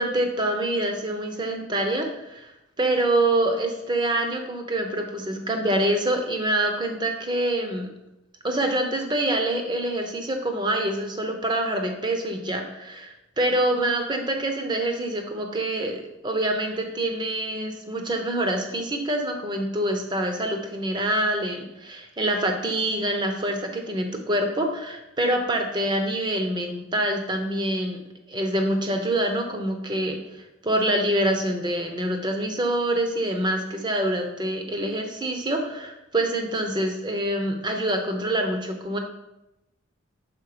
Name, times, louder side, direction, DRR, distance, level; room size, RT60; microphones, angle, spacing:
voice 1, 0.0-2.5 2.8-7.9 8.4-28.0 28.3-39.0, right 1 dB, 20° right, 4 dB, 0.7 m, -26 dB
5.8 x 4.5 x 4.9 m, 0.92 s
head